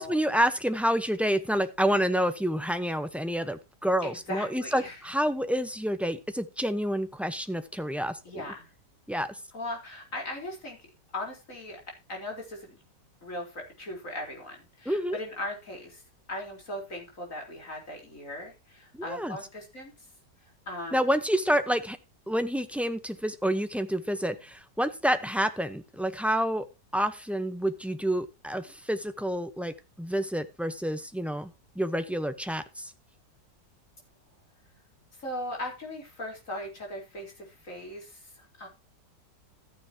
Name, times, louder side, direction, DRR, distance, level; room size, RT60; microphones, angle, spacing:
voice 1, 0.0-8.4 9.1-9.4 14.9-15.2 18.9-19.4 20.9-22.0 22.3-26.7 26.9-32.9, equal, ahead, 9 dB, 0.4 m, -28 dB
voice 2, 4.0-5.0 8.2-8.7 9.5-10.8 11.1-11.8 12.1-12.8 13.2-16.0 16.3-19.9 20.7-21.0 35.2-38.7, left 1 dB, 45° left, 1 dB, 4.5 m, -38 dB
14.0 x 9.6 x 2.9 m, 0.27 s
omnidirectional pair, 1.9 m